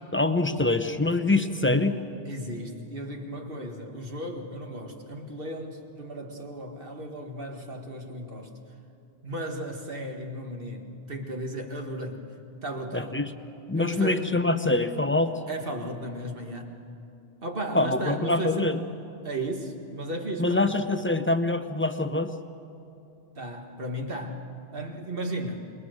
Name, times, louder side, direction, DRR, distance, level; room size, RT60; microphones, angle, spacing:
voice 1, 0.1-2.0 12.9-13.3 13.7-15.3 17.7-18.8 20.4-22.3, left 2 dB, 15° left, 9 dB, 0.7 m, -24 dB
voice 2, 2.3-8.5 9.2-12.3 12.6-13.2 13.7-14.3 15.5-16.8 17.4-18.7 19.2-20.7 23.4-25.7, right 1 dB, 55° right, 3 dB, 2.0 m, -35 dB
27.0 x 21.0 x 6.5 m, 2.7 s
omnidirectional pair, 1.1 m